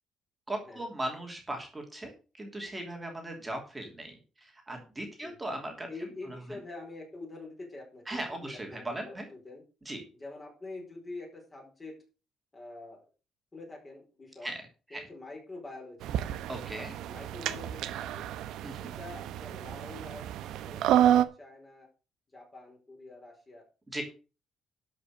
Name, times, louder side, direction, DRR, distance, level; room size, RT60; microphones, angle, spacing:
voice 1, 0.5-5.9 6.5-6.6 8.1-9.2 9.8-10.0 14.4-14.6 14.9-15.0 16.5-17.0 18.6-18.8 23.9-24.0, right 1 dB, 10° right, 2 dB, 2.9 m, -38 dB
voice 2, 5.9-9.6 10.2-12.0 12.5-13.1 13.5-14.5 14.9-16.1 17.0-18.3 18.8-21.9 22.3-23.6, left 2 dB, 20° left, 0 dB, 4.5 m, -46 dB
sound 1, 16.0-21.2, right 11 dB, 80° right, 1.0 m, -29 dB
12.5 x 5.8 x 6.5 m, 0.33 s
cardioid pair, 160°, 0 cm